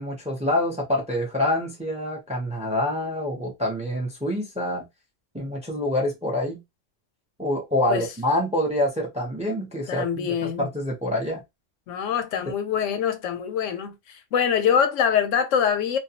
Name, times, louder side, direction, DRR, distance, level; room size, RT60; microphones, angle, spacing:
voice 1, 0.0-4.9 5.3-6.6 7.4-11.4, left 1 dB, 10° right, 0.5 m, -26 dB
voice 2, 9.9-10.7 11.9-16.0, left 8 dB, 85° left, 0.9 m, -24 dB
2.3 x 2.2 x 2.7 m
omnidirectional pair, 1.3 m